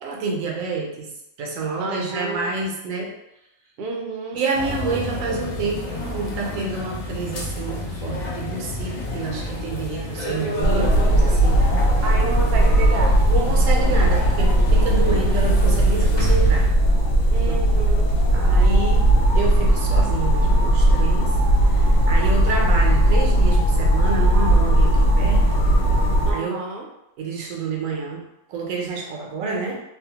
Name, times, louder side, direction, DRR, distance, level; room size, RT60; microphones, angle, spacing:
voice 1, 0.0-1.1 1.4-3.2 4.3-11.6 13.2-16.7 17.4-17.6 18.3-19.1 19.3-21.3 21.7-25.7 26.3-26.6 27.2-29.8, right 4 dB, 80° right, 0 dB, 1.0 m, -28 dB
voice 2, 1.8-2.5 3.8-4.5 12.0-13.2 17.3-18.0 26.3-26.9, right 3 dB, 60° right, 0 dB, 0.7 m, -30 dB
sound 1, 4.5-16.7, left 1 dB, 60° left, 0.4 m, -30 dB
sound 2, 10.6-26.3, right 1 dB, 80° left, 0.9 m, -17 dB
2.7 x 2.1 x 2.8 m, 0.84 s
omnidirectional pair, 1.4 m